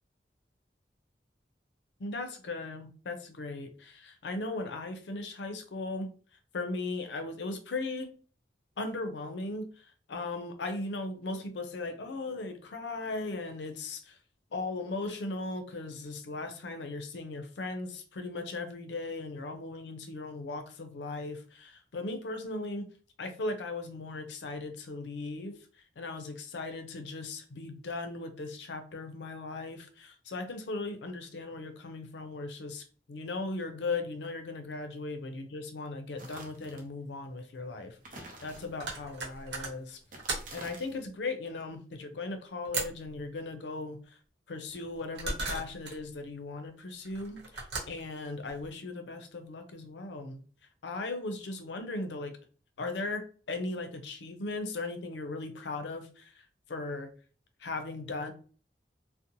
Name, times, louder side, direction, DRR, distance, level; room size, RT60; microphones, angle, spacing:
voice 1, 2.0-6.1 6.5-8.1 8.8-14.2 14.5-22.9 23.2-25.6 26.0-40.0 40.5-44.2 44.5-50.4 50.8-52.4 52.8-57.1 57.6-58.3, left 3 dB, 80° left, 0.5 m, -38 dB
sound 1, 36.2-36.9 38.0-39.0 40.0-41.0, right 2 dB, 50° right, 0.7 m, -48 dB
sound 2, 36.6-36.7 37.9-40.7 42.6-43.1 44.7-46.0 47.0-48.7, right 3 dB, 75° right, 0.9 m, -38 dB
2.6 x 2.0 x 2.8 m
head